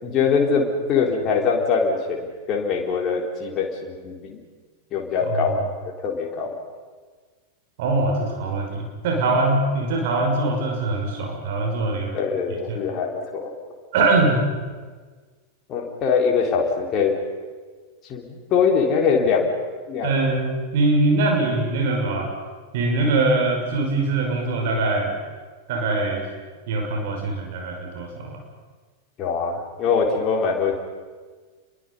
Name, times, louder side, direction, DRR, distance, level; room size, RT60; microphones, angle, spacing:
voice 1, 0.0-4.4 4.9-6.6 12.1-13.5 15.7-17.1 18.1-19.6 19.9-20.1 29.2-30.8, left 5 dB, 35° left, 0 dB, 3.9 m, -23 dB
voice 2, 7.8-12.2 12.7-12.8 13.9-14.4 20.0-22.3 22.7-25.1 25.7-26.2 26.7-28.4, right 2 dB, 50° right, 1 dB, 5.9 m, -22 dB
29.5 x 22.5 x 5.6 m, 1.5 s
figure-of-eight pair, 90°, 0 cm